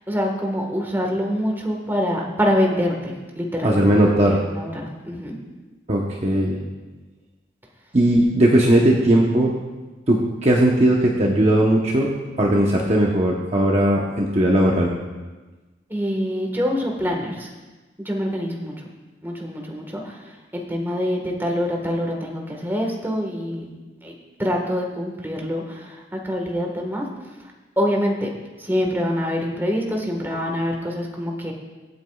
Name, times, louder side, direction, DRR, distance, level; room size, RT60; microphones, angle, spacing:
voice 1, 0.1-3.8 4.2-5.4 15.9-17.5 18.0-18.7 19.2-20.2 20.5-23.7 24.0-27.0 27.8-28.3 28.6-31.5, equal, 10° right, 0 dB, 1.5 m, -25 dB
voice 2, 3.6-4.4 5.9-6.6 7.9-9.5 10.1-12.1 12.4-14.9, right 1 dB, 35° right, -2 dB, 1.0 m, -18 dB
23.5 x 8.2 x 2.4 m, 1.2 s
head